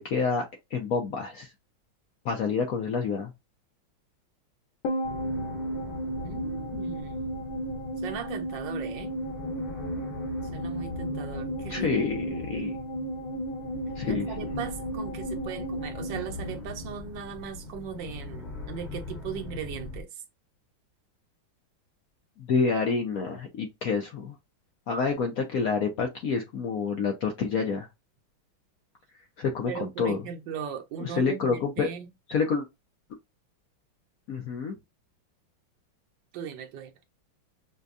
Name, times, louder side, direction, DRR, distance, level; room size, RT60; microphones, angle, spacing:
voice 1, 0.0-1.5 2.2-3.3 11.7-12.7 14.0-14.3 22.4-24.3 24.9-27.9 29.4-30.2 31.0-31.9 32.3-32.6 34.3-34.7, left 5 dB, 65° left, 0.9 m, -28 dB
sound 1, 4.8-17.4 17.6-17.7, right 1 dB, 85° left, 1.7 m, -34 dB
sound 2, 5.0-20.0, left 3 dB, 25° left, 1.1 m, -41 dB
voice 2, 6.2-7.3 8.0-9.1 10.5-11.9 14.0-20.2 29.7-32.1 36.3-36.9, right 7 dB, 70° right, 1.3 m, -38 dB
5.2 x 2.2 x 2.5 m
omnidirectional pair, 2.2 m